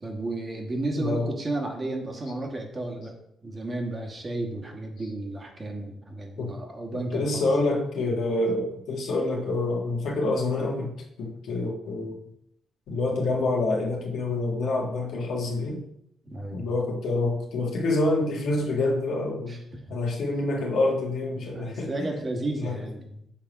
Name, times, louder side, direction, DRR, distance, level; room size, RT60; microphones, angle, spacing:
voice 1, 0.0-3.1 3.4-7.4 16.3-16.7 19.5-20.0 21.5-23.2, right 2 dB, 30° right, 2 dB, 1.3 m, -33 dB
voice 2, 0.9-1.3 6.4-6.5 6.9-10.9 11.2-12.2 12.9-15.8 16.5-19.6 19.9-21.9 22.6-22.8, left 2 dB, 70° left, 0 dB, 1.4 m, -27 dB
5.8 x 3.4 x 5.0 m, 0.76 s
cardioid pair, 90°, 0 cm